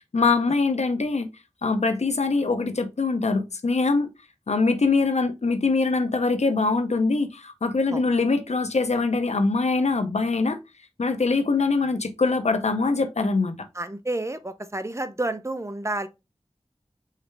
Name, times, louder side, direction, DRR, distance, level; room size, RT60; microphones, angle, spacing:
voice 1, 0.1-1.3 1.6-4.1 4.5-10.6 11.0-13.6, left 3 dB, 85° left, 0.7 m, -23 dB
voice 2, 13.7-16.1, right 2 dB, 25° right, 0.6 m, -30 dB
4.9 x 3.2 x 3.2 m
wide cardioid pair, 45°, 11 cm